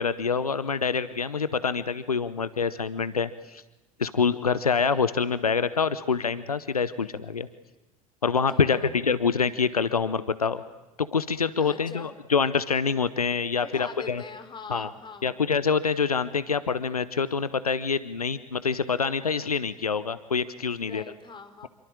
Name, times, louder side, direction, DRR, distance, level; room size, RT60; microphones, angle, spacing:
voice 1, 0.0-3.6 4.0-7.5 8.2-10.6 11.0-14.2 14.7-14.9 15.2-21.0, left 5 dB, 85° left, 15 dB, 0.9 m, -26 dB
voice 2, 8.5-8.9 11.6-12.1 13.6-15.3 20.8-21.7, left 5 dB, 25° left, 9 dB, 3.7 m, -43 dB
27.5 x 23.5 x 8.8 m, 1.1 s
figure-of-eight pair, 70°, 19 cm